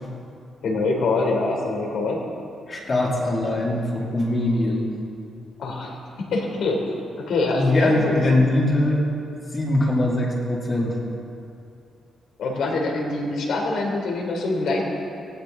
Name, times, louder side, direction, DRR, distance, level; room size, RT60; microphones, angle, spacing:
voice 1, 0.6-2.2 5.6-5.9 6.2-7.0 7.3-8.4 12.4-14.8, left 3 dB, 75° left, 0 dB, 3.1 m, -24 dB
voice 2, 2.7-4.9 7.5-9.0 9.5-11.0, left 1 dB, 30° left, -3 dB, 2.3 m, -22 dB
17.5 x 17.5 x 3.8 m, 2.5 s
wide cardioid pair, 180°, 0 cm